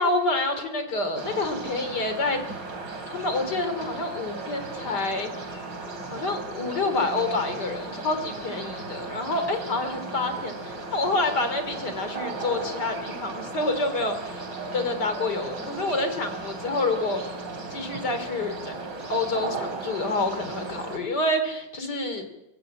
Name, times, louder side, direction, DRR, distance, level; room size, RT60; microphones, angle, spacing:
voice 1, 0.0-2.4 3.1-5.5 6.1-14.4 14.7-17.2 17.7-18.7 19.1-22.2, left 2 dB, 65° left, 8 dB, 3.6 m, -28 dB
sound 1, 1.2-21.0, right 3 dB, 75° right, 3.6 m, -36 dB
24.0 x 15.5 x 8.9 m, 0.92 s
omnidirectional pair, 2.0 m